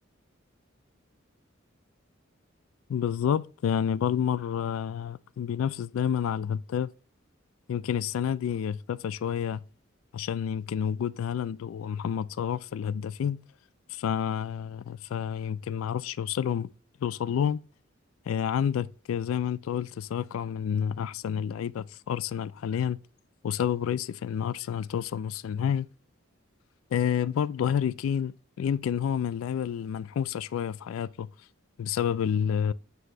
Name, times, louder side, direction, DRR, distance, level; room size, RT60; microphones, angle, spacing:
voice 1, 2.9-6.9 7.7-9.6 10.1-13.4 13.9-16.7 17.0-17.6 18.3-23.0 23.4-25.9 26.9-31.3 31.8-32.7, left 8 dB, 90° left, 0.3 m, -29 dB
7.9 x 2.8 x 5.0 m
head